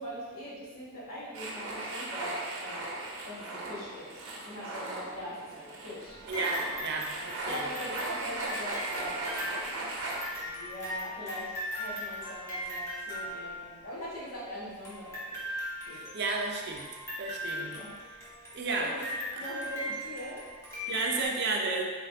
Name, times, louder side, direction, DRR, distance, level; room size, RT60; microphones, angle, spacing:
voice 1, 0.0-2.9 3.2-6.2 7.4-9.5 10.3-15.6 15.9-16.1 17.5-18.0 18.8-19.0 19.4-20.4, equal, 80° left, -8 dB, 1.3 m, -42 dB
sound 1, 1.3-10.2, right 2 dB, 85° right, 0.8 m, -38 dB
sound 2, 6.1-14.0 14.8-21.3, equal, 15° left, 0.8 m, -39 dB
voice 2, 6.3-7.6 15.9-16.8 17.2-17.7 18.5-18.9 19.4-19.5 20.9-21.9, right 3 dB, 50° right, 1 dB, 0.4 m, -32 dB
3.8 x 3.3 x 2.6 m, 1.5 s
head